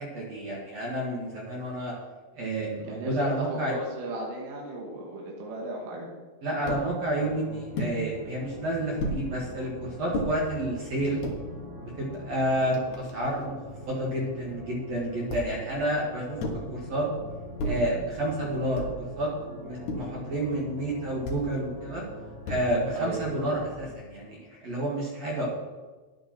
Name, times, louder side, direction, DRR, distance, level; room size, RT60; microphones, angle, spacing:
voice 1, 0.0-1.9 2.3-3.7 6.4-11.2 11.8-13.5 13.9-16.4 16.7-17.1 17.6-22.0 22.5-25.5, right 1 dB, 50° right, -3 dB, 2.1 m, -30 dB
voice 2, 2.9-6.1 23.0-23.3, right 1 dB, 80° right, -2 dB, 4.4 m, -36 dB
sound 1, 6.7-6.9 7.8-8.0 9.0-9.2 10.1-10.3 11.0-11.4 12.1-12.2 12.5-13.5 15.3-15.7 16.4-16.7 17.6-17.9 18.8-19.1 19.9-20.2 21.2-21.5 22.4-22.9, equal, 70° left, 1.7 m, -33 dB
sound 2, 7.2-23.9, equal, 30° right, 5.1 m, -43 dB
12.5 x 10.5 x 4.5 m, 1.3 s
omnidirectional pair, 5.8 m